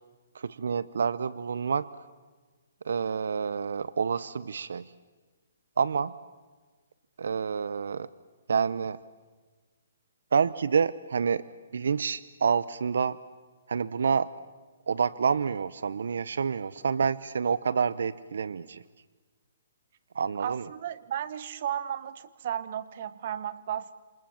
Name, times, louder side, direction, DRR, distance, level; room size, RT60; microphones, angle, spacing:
voice 1, 0.3-1.9 2.8-4.9 5.8-6.1 7.2-8.1 8.5-9.0 10.3-11.4 11.7-13.2 13.7-14.3 14.9-18.8 20.1-20.7, right 6 dB, 75° right, 18 dB, 0.8 m, -28 dB
voice 2, 20.4-23.9, right 10 dB, 45° right, 16 dB, 1.2 m, -34 dB
28.0 x 27.5 x 7.2 m, 1.4 s
hypercardioid pair, 165°, 0 cm